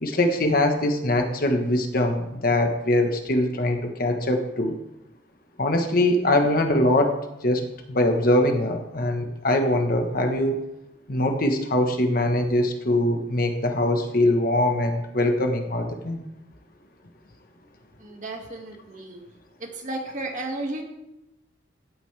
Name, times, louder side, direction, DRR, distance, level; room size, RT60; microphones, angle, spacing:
voice 1, 0.0-4.8 5.6-10.7 11.1-16.3, left 1 dB, 50° left, 5 dB, 1.2 m, -22 dB
voice 2, 18.0-19.2 19.6-20.8, right 2 dB, 40° right, 1 dB, 1.9 m, -33 dB
16.5 x 9.0 x 3.4 m, 0.90 s
head